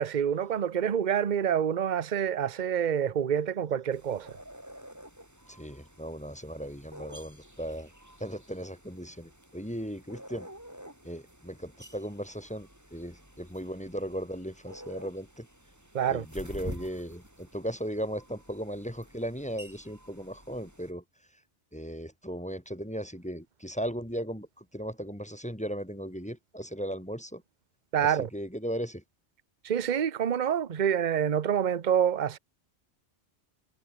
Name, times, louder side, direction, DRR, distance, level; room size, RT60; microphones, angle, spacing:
voice 1, 0.0-4.3 15.9-16.2 27.9-28.3 29.6-32.4, right 8 dB, 45° right, 0.9 m, -27 dB
sound 1, 3.9-20.9, equal, 15° right, 5.1 m, -49 dB
voice 2, 5.5-7.9 8.2-10.5 11.0-15.5 16.1-21.0 21.7-27.4 28.0-29.0, equal, 5° left, 2.4 m, -37 dB
omnidirectional pair, 1.2 m